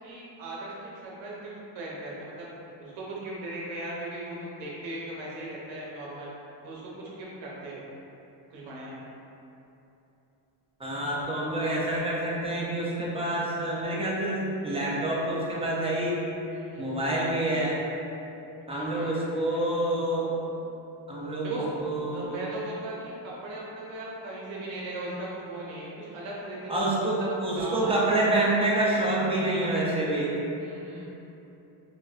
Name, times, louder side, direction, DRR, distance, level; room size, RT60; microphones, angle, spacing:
voice 1, 0.0-2.5 2.8-6.3 6.6-7.8 8.5-9.0 16.5-16.9 18.7-19.7 21.4-21.7 22.1-27.1 27.6-28.0 30.6-31.1, right 1 dB, 85° right, -6 dB, 0.9 m, -38 dB
voice 2, 10.8-16.2 16.8-17.8 18.7-20.3 21.1-22.4 26.7-30.3, right 1 dB, 15° right, -6 dB, 0.4 m, -27 dB
4.5 x 2.1 x 2.4 m, 2.9 s
cardioid pair, 140°, 44 cm